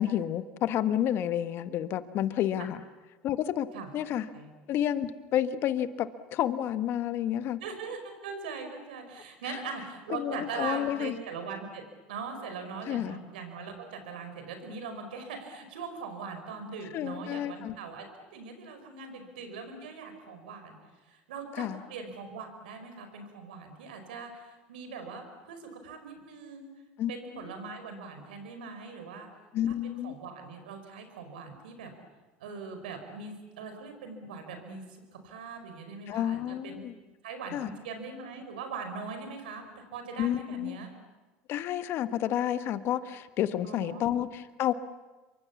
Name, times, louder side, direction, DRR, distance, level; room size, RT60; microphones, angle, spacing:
voice 1, 0.0-2.8 3.2-3.7 3.9-4.3 4.7-7.6 9.5-9.6 10.1-11.2 12.9-13.2 16.9-17.7 21.5-21.8 27.0-27.5 29.5-30.1 36.1-36.9 37.5-37.7 40.2-40.8 41.5-44.7, left 11 dB, 55° left, 11 dB, 1.4 m, -30 dB
voice 2, 7.6-18.1 18.3-20.8 21.0-26.7 27.1-29.3 29.7-31.9 32.4-36.8 37.2-40.9 43.6-44.0, right 5 dB, 85° right, 6 dB, 5.2 m, -41 dB
27.5 x 24.0 x 7.2 m, 1.2 s
supercardioid pair, 90°, 5 cm